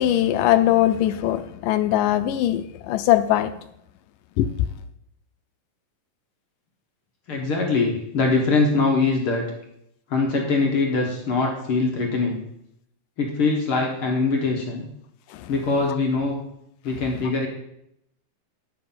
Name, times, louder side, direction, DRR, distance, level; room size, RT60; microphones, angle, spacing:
voice 1, 0.0-3.5 4.4-4.7 15.3-15.5, left 12 dB, 80° left, 2.0 m, -21 dB
voice 2, 7.3-9.4 10.1-12.4 13.2-14.9 15.5-16.4 16.8-17.5, left 3 dB, 55° left, 1.6 m, -22 dB
9.7 x 7.2 x 5.5 m
omnidirectional pair, 4.0 m